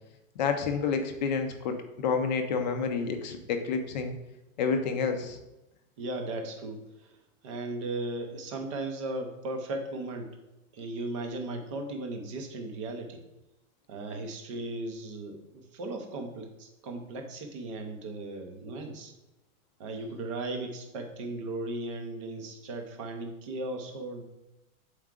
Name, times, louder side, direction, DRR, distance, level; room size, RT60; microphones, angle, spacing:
voice 1, 0.4-4.1 4.6-5.4, left 5 dB, 30° left, 6 dB, 0.5 m, -29 dB
voice 2, 6.0-6.8 7.4-10.3 10.7-13.2 13.9-19.1 19.8-24.2, right 2 dB, 25° right, 4 dB, 0.5 m, -36 dB
7.4 x 4.6 x 3.7 m, 0.95 s
supercardioid pair, 170°, 43 cm